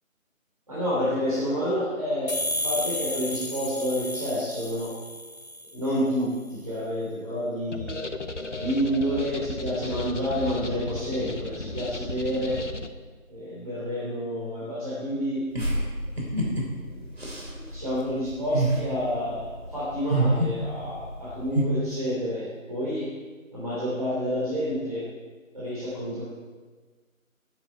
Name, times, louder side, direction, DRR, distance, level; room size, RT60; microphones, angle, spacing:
voice 1, 0.7-2.3 2.6-4.9 5.7-8.0 8.5-12.6 13.3-15.4 16.8-17.0 17.7-23.1 23.5-25.0 25.5-26.2, equal, 25° right, -9 dB, 3.3 m, -29 dB
sound 1, 2.3-5.9, left 1 dB, 75° left, 1.4 m, -32 dB
sound 2, 7.7-12.9, left 2 dB, 55° left, 1.1 m, -35 dB
sound 3, 15.5-21.6, right 1 dB, 45° right, 3.1 m, -28 dB
19.0 x 9.9 x 4.5 m, 1.4 s
figure-of-eight pair, 175°, 42 cm